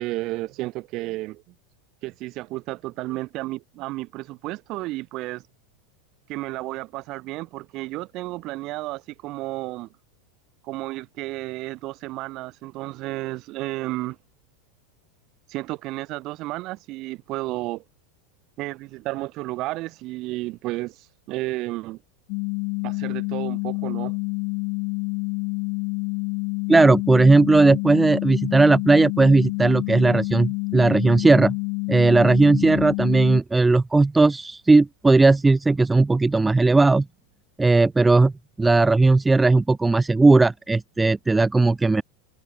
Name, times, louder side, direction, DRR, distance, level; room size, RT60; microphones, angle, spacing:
voice 1, 0.0-1.5 2.0-5.4 6.3-9.9 10.6-14.2 15.5-17.8 18.6-22.0 22.8-24.2, right 19 dB, 45° right, 1.9 m, -32 dB
sound 1, 22.3-33.4, left 34 dB, 55° left, 0.7 m, -28 dB
voice 2, 26.7-31.5 31.9-37.0 37.6-38.3 38.6-42.0, right 3 dB, 10° right, 0.8 m, -17 dB
supercardioid pair, 130°, 0 cm